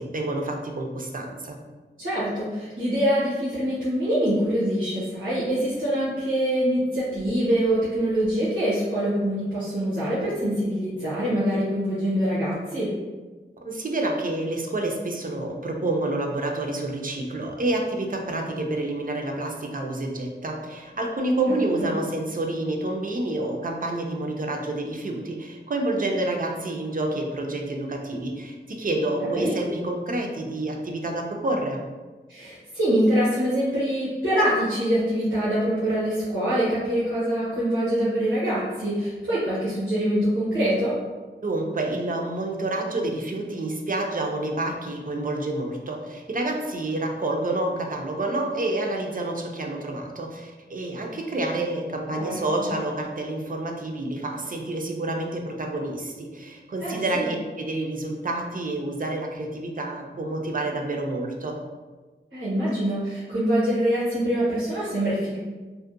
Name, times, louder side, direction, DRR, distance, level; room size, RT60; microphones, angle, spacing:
voice 1, 0.0-1.6 13.6-31.8 41.4-61.6, right 2 dB, 45° right, 2 dB, 0.4 m, -28 dB
voice 2, 2.0-12.9 21.8-21.9 29.3-29.5 32.3-41.0 52.1-52.4 56.8-57.3 62.3-65.4, equal, 90° right, -11 dB, 0.8 m, -24 dB
2.6 x 2.1 x 2.5 m, 1.3 s
wide cardioid pair, 45°, 20 cm